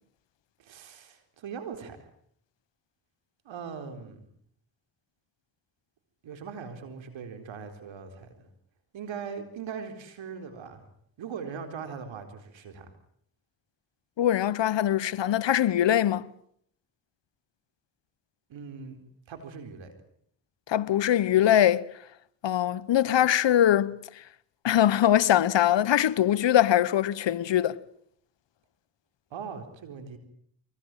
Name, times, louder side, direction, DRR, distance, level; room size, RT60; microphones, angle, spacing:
voice 1, 0.6-2.0 3.4-4.2 6.2-8.5 8.9-10.9 11.2-12.9 18.5-19.0 19.3-19.9 29.3-30.2, right 6 dB, 85° right, 4.2 m, -40 dB
voice 2, 14.2-16.2 20.7-21.8 22.4-23.9 24.6-27.8, left 11 dB, 70° left, 1.1 m, -22 dB
24.0 x 20.0 x 9.1 m
supercardioid pair, 50°, 45 cm